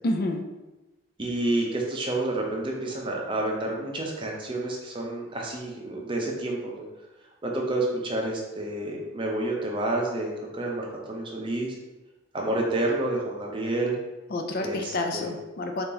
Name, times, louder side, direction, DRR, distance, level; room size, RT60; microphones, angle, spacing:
voice 1, 0.0-0.4 14.3-15.8, left 2 dB, 45° left, 3 dB, 0.4 m, -29 dB
voice 2, 1.2-6.8 7.4-11.8 12.3-14.0 14.6-15.3, right 2 dB, 25° right, -1 dB, 0.6 m, -29 dB
3.9 x 2.9 x 3.8 m, 1.1 s
head